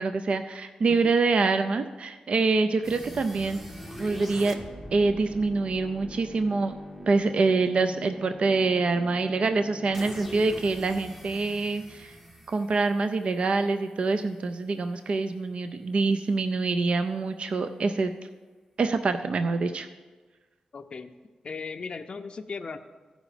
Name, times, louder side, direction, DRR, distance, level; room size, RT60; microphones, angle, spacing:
voice 1, 0.0-3.6 4.0-4.6 4.9-6.8 7.1-12.1 12.5-18.1 18.8-19.9, right 3 dB, 55° right, 9 dB, 0.4 m, -25 dB
sound 1, 2.8-13.8, equal, 10° right, 0.9 m, -43 dB
voice 2, 20.7-21.1 21.4-22.8, left 4 dB, 45° left, 6 dB, 0.5 m, -37 dB
15.0 x 5.1 x 4.9 m, 1.3 s
wide cardioid pair, 115°, 2 cm